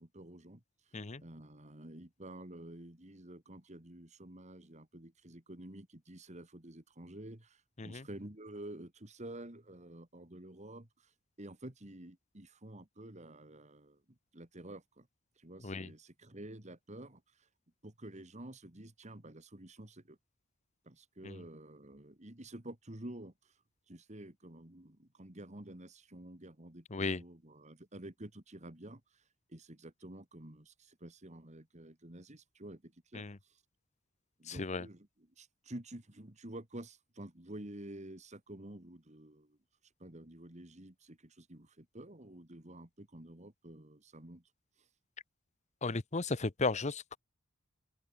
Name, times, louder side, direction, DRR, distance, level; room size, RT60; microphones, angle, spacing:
voice 1, 0.0-11.1 11.4-15.1 15.4-17.5 17.8-20.2 20.8-23.6 23.9-29.2 29.5-33.6 34.4-39.6 40.0-44.4 44.8-44.9, right 1 dB, 35° right, 2.4 m, -50 dB
voice 2, 26.9-27.2 33.1-33.4 34.5-34.9 45.8-47.2, left 3 dB, 35° left, 0.9 m, -35 dB
open air
head